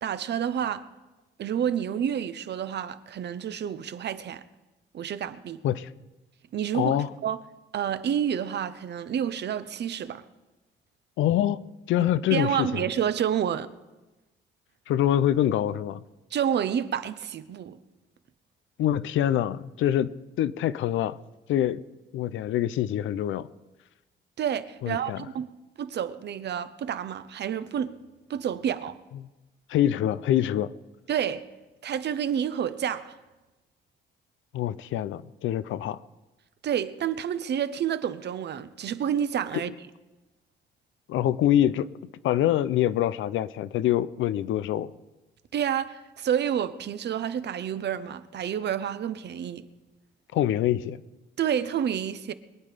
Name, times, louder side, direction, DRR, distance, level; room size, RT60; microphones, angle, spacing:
voice 1, 0.0-0.9 1.4-4.4 4.9-5.6 6.5-7.4 7.7-10.2 12.0-13.7 16.3-17.8 24.4-25.5 25.8-28.0 28.3-29.0 31.1-31.5 31.8-33.2 36.6-39.7 45.5-49.6 51.4-52.3, right 9 dB, 60° right, 0.8 m, -29 dB
voice 2, 6.7-7.1 11.2-12.9 14.9-16.0 18.8-20.1 20.4-21.2 21.5-21.8 22.1-23.5 24.8-25.3 29.7-30.7 34.5-36.0 41.1-41.9 42.2-44.9 50.3-51.0, left 12 dB, 80° left, 0.6 m, -25 dB
22.5 x 8.9 x 5.0 m
cardioid pair, 90°, 20 cm